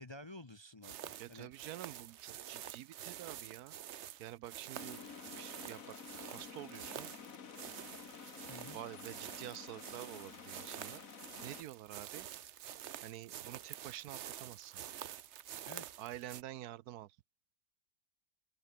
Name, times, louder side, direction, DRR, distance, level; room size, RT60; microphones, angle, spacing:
voice 1, 0.0-1.5 8.5-8.8 15.6-15.9, left 2 dB, 25° left, 0.6 m, -51 dB
sound 1, 0.8-16.4, right 11 dB, 60° right, 0.8 m, -48 dB
voice 2, 1.2-3.7 4.2-5.0 5.4-7.1 8.7-11.0 11.4-12.3 13.0-14.8 16.0-17.1, right 14 dB, 75° right, 1.1 m, -48 dB
sound 2, 4.7-11.6, left 6 dB, 60° left, 1.9 m, -51 dB
open air
omnidirectional pair, 1.7 m